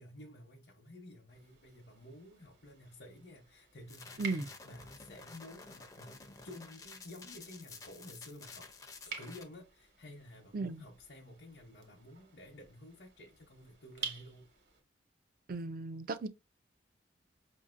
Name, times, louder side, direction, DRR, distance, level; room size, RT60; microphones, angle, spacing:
voice 1, 0.0-6.2 6.4-14.5, left 1 dB, 60° left, 0.8 m, -52 dB
sound 1, 1.3-14.8, right 5 dB, 65° right, 1.1 m, -51 dB
sound 2, 3.9-9.4, left 4 dB, 20° left, 0.5 m, -52 dB
voice 2, 15.5-16.3, right 3 dB, 50° right, 0.4 m, -36 dB
5.6 x 2.6 x 2.4 m
head